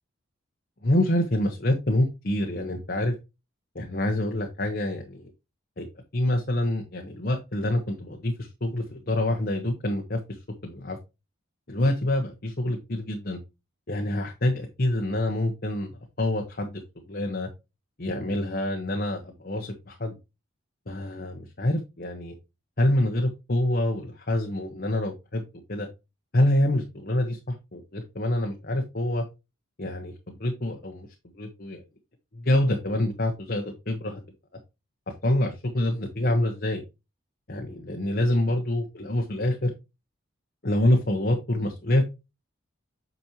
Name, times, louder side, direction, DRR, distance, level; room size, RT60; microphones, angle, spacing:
voice 1, 0.8-3.1 3.7-5.2 5.8-5.9 6.1-10.2 10.6-11.0 11.7-13.4 13.9-16.8 17.1-17.5 18.0-20.2 20.9-22.3 22.8-25.4 25.7-25.9 26.3-29.2 29.8-31.1 31.3-31.8 32.3-34.2 35.1-36.8 37.5-39.7 40.6-42.1, left 1 dB, 45° left, 3 dB, 1.1 m, -26 dB
8.5 x 5.3 x 3.0 m, 0.25 s
head